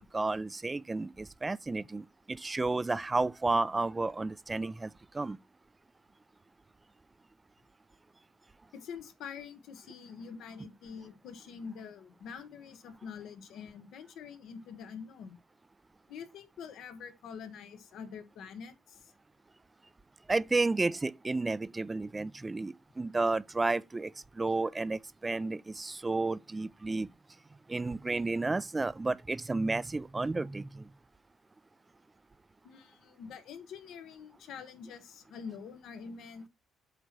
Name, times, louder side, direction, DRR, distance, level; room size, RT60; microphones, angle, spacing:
voice 1, 0.0-5.4 20.3-27.1 27.7-30.9, right 3 dB, 20° right, 0.3 m, -32 dB
voice 2, 8.7-15.4 16.1-19.1 32.6-36.5, left 6 dB, 80° left, 1.1 m, -46 dB
8.0 x 3.0 x 5.8 m
cardioid pair, 90°, 0 cm